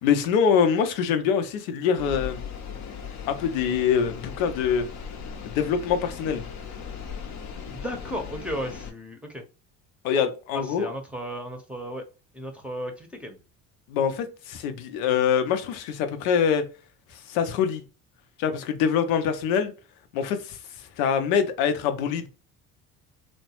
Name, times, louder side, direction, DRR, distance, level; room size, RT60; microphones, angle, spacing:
voice 1, 0.0-2.4 3.3-4.9 5.5-6.4 10.0-10.9 13.9-16.6 17.1-17.8 18.4-19.7 20.1-22.3, left 7 dB, 80° left, 0.6 m, -24 dB
sound 1, 2.0-8.9, left 7 dB, 45° left, 0.7 m, -38 dB
voice 2, 7.7-9.4 10.7-12.1 12.3-13.4, equal, 5° right, 0.7 m, -35 dB
2.9 x 2.1 x 2.8 m
hypercardioid pair, 65°, 41 cm